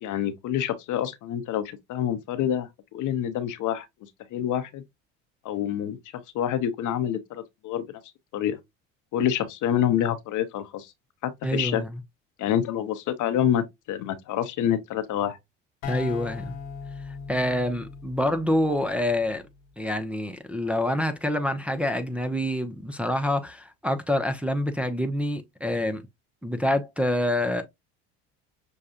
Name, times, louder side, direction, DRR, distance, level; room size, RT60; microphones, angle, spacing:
voice 1, 0.0-3.9 4.3-4.8 5.4-8.0 8.3-8.6 9.1-10.9 11.2-11.8 12.4-15.4, left 10 dB, 55° left, 0.8 m, -27 dB
voice 2, 11.4-12.0 15.8-16.5 17.3-19.4 19.8-26.0 26.4-27.6, left 1 dB, 5° right, 0.6 m, -26 dB
sound 1, 15.8-19.5, left 6 dB, 75° left, 1.1 m, -39 dB
6.4 x 2.3 x 2.7 m
hypercardioid pair, 80°, 36 cm